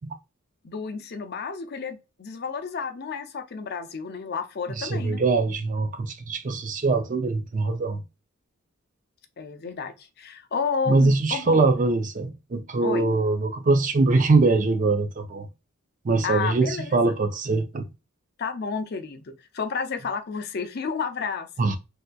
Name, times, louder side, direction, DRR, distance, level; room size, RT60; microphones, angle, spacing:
voice 1, 0.6-5.2 9.4-11.6 12.8-13.0 16.2-17.1 18.4-21.5, left 5 dB, 50° left, 0.5 m, -31 dB
voice 2, 4.8-8.0 10.9-15.5 16.0-17.9 21.6-21.8, right 3 dB, 40° right, 0.4 m, -22 dB
3.3 x 2.8 x 2.2 m
head